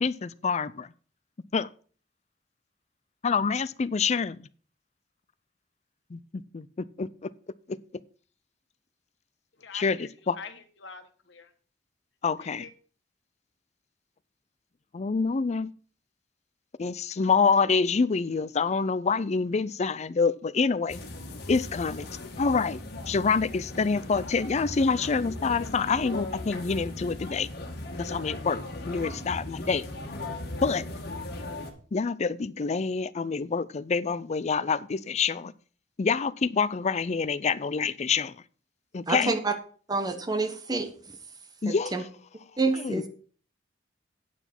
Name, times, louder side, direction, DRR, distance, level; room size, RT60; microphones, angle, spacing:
voice 1, 0.0-0.9 1.5-1.7 3.2-4.4 6.1-6.2 6.5-6.7 7.0-7.1 7.7-7.8 9.7-10.4 12.2-12.7 14.9-15.7 16.8-21.0 21.5-22.1 22.4-22.8 23.1-27.5 28.0-29.9 30.6-30.8 31.9-35.5 36.0-38.3 38.9-39.3 41.6-42.0 42.8-43.0, left 5 dB, 40° left, 0.4 m, -26 dB
voice 2, 9.6-11.5 12.4-12.7, left 5 dB, 90° left, 1.4 m, -45 dB
sound 1, 20.9-31.7, left 2 dB, 60° left, 1.8 m, -38 dB
voice 3, 39.1-39.5 39.9-40.9 41.7-42.0 42.6-43.0, right 3 dB, 20° right, 1.1 m, -27 dB
9.1 x 6.1 x 5.9 m
head